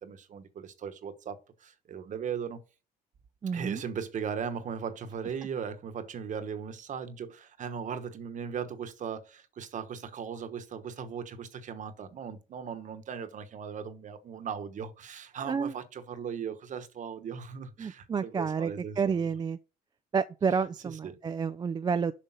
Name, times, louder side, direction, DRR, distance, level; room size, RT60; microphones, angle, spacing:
voice 1, 0.0-2.6 3.5-19.2 20.8-21.2, right 7 dB, 50° right, 1.2 m, -38 dB
voice 2, 3.4-3.8 15.5-15.7 17.8-19.6 20.1-22.1, right 6 dB, 25° right, 0.4 m, -30 dB
7.4 x 5.2 x 5.7 m
cardioid pair, 110°, 17 cm